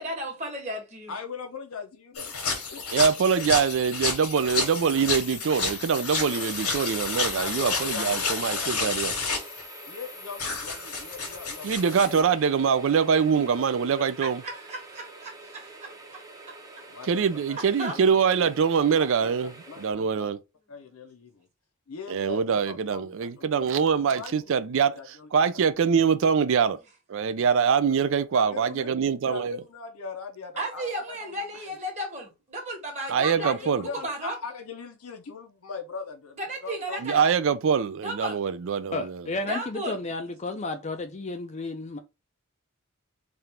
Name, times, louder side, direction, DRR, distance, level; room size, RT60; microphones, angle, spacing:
voice 1, 0.0-1.1 14.0-16.2 16.5-16.6 17.6-17.9 30.6-33.7 34.0-34.4 36.4-37.3 38.0-38.4 39.4-40.0, right 1 dB, 30° right, 1.4 m, -34 dB
voice 2, 1.1-3.0 7.3-9.2 9.9-12.3 16.9-18.0 18.9-20.3 20.7-21.5 21.9-23.7 24.1-25.5 28.3-28.9 29.2-31.5 33.3-37.0 39.4-39.5, left 5 dB, 70° left, 0.7 m, -40 dB
sound 1, 2.1-12.2, left 4 dB, 90° left, 1.5 m, -31 dB
voice 3, 2.9-9.1 11.6-14.4 17.1-19.5 19.8-20.4 22.1-25.0 25.3-26.8 27.1-29.6 33.1-33.8 37.0-39.2, right 6 dB, 60° right, 0.4 m, -24 dB
sound 2, 6.3-19.9, right 2 dB, 15° right, 0.7 m, -46 dB
voice 4, 38.9-42.0, left 2 dB, 30° left, 0.4 m, -32 dB
3.4 x 2.4 x 4.3 m
head